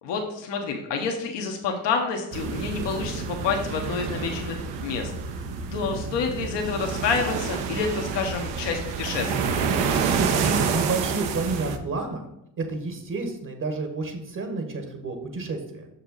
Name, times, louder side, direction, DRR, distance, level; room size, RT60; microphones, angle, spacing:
voice 1, 0.0-5.1 5.7-9.5, left 5 dB, 70° left, 2 dB, 1.1 m, -28 dB
sound 1, 2.3-11.8, right 5 dB, 70° right, 1.0 m, -28 dB
voice 2, 10.0-12.3 12.6-15.9, right 3 dB, 45° right, 5 dB, 1.4 m, -30 dB
6.1 x 5.6 x 4.1 m, 0.81 s
supercardioid pair, 60°, 44 cm